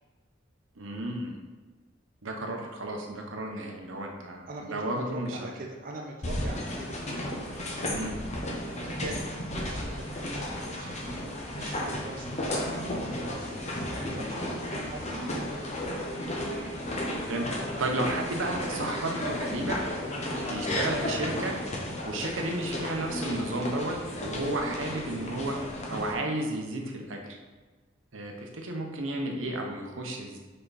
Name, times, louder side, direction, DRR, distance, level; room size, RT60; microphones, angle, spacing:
voice 1, 0.8-1.4 2.2-5.4 7.8-8.2 16.4-16.7 17.3-19.8 20.4-21.5 22.1-25.6 25.9-27.4 28.1-30.4, right 1 dB, 85° right, 1 dB, 1.0 m, -33 dB
voice 2, 4.5-7.0 8.7-11.2 11.5-12.9 13.2-15.4, right 1 dB, 45° right, 0 dB, 0.6 m, -42 dB
sound 1, 6.2-26.1, left 1 dB, 35° left, 1.0 m, -33 dB
5.7 x 5.3 x 4.1 m, 1.3 s
head